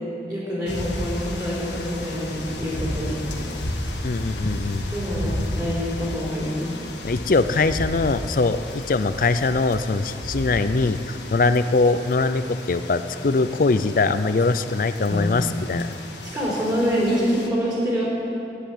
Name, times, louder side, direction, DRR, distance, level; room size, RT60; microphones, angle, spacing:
voice 1, 0.3-3.3 4.9-6.7 15.1-15.4 16.2-18.0, equal, 20° right, -7 dB, 3.9 m, -26 dB
sound 1, 0.7-17.5, left 1 dB, 85° left, 1.6 m, -33 dB
voice 2, 4.0-4.9 7.0-15.9, left 3 dB, 50° left, 12 dB, 0.5 m, -22 dB
11.0 x 9.4 x 8.6 m, 2.7 s
head